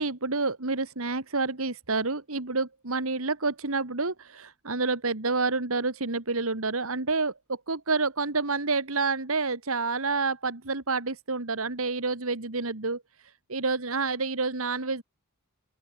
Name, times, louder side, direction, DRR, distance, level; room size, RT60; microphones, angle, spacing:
voice 1, 0.0-13.0 13.5-15.0, right 3 dB, 75° right, 2.2 m, -28 dB
open air
head